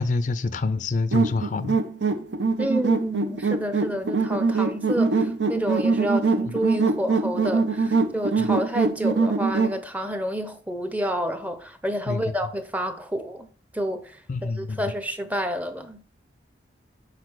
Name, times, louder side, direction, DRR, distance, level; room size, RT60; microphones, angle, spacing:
voice 1, 0.0-1.8 8.4-8.5 12.1-12.3 14.3-14.8, left 3 dB, 45° left, 0.4 m, -26 dB
sound 1, 1.1-9.8, right 4 dB, 90° right, 0.7 m, -23 dB
voice 2, 2.6-13.5 13.7-16.0, equal, 10° right, 0.6 m, -29 dB
6.6 x 4.0 x 4.5 m
head